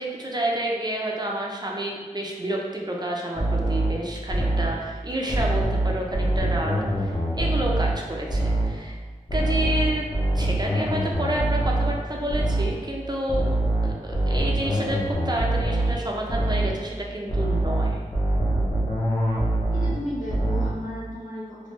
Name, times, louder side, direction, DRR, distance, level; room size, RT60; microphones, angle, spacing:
voice 1, 0.0-9.0 9.3-10.0 10.3-13.5 13.8-18.0, right 1 dB, 30° right, -1 dB, 0.5 m, -29 dB
sound 1, 3.4-4.8 5.3-8.0 8.3-8.8 9.3-12.8 13.3-16.0 16.3-16.8 17.3-20.0 20.3-20.8, right 1 dB, 35° left, 0.9 m, -24 dB
voice 2, 19.7-21.7, equal, 70° left, -9 dB, 1.3 m, -34 dB
3.2 x 2.4 x 3.1 m, 1.4 s
wide cardioid pair, 65°, 14 cm